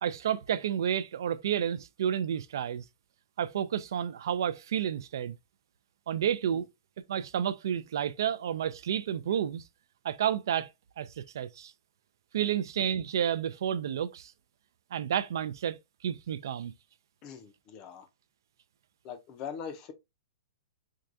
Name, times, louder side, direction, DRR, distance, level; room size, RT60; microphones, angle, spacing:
voice 1, 0.0-2.8 3.4-5.4 6.1-6.7 7.1-9.6 10.0-10.7 11.0-11.7 12.3-14.3 14.9-16.7, right 9 dB, 65° right, 0.3 m, -30 dB
voice 2, 17.2-18.1 19.0-19.9, left 7 dB, 25° left, 0.5 m, -42 dB
4.6 x 2.3 x 2.5 m
hypercardioid pair, 170°, 2 cm